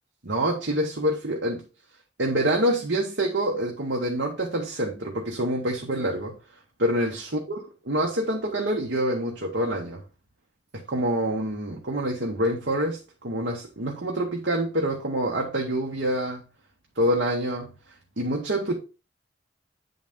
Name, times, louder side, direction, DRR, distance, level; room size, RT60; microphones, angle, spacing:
voice 1, 0.2-1.6 2.2-6.3 6.8-10.0 10.7-16.4 17.0-17.7 18.2-18.7, right 1 dB, 65° right, 1.2 m, -26 dB
8.9 x 4.0 x 3.6 m
head